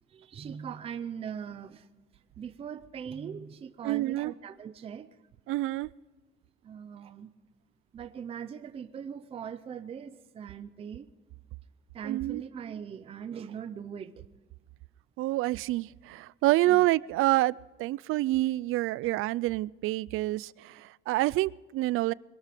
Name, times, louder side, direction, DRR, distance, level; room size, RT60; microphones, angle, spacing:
voice 1, 0.1-1.9 2.1-5.1 6.6-7.3 7.9-11.1 11.9-14.3 16.7-16.9, right 7 dB, 25° right, 10 dB, 0.5 m, -40 dB
voice 2, 3.8-4.3 5.5-5.9 12.0-12.4 15.2-22.1, right 17 dB, 75° right, 22 dB, 0.4 m, -27 dB
22.0 x 12.5 x 5.0 m, 1.3 s
cardioid pair, 180°, 21 cm